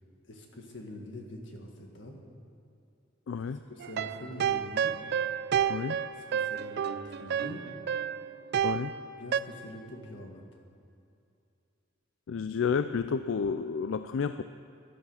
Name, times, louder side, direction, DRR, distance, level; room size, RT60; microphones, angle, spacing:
voice 1, 0.2-2.2 3.7-4.9 6.3-7.7 9.2-10.4, left 1 dB, 70° left, 1 dB, 1.9 m, -44 dB
voice 2, 3.3-3.6 5.7-6.0 8.6-8.9 12.3-14.4, left 6 dB, 90° left, 11 dB, 0.4 m, -30 dB
sound 1, 3.8-9.4, right 8 dB, 60° right, 0.4 m, -30 dB
15.5 x 11.0 x 5.7 m, 2.6 s
head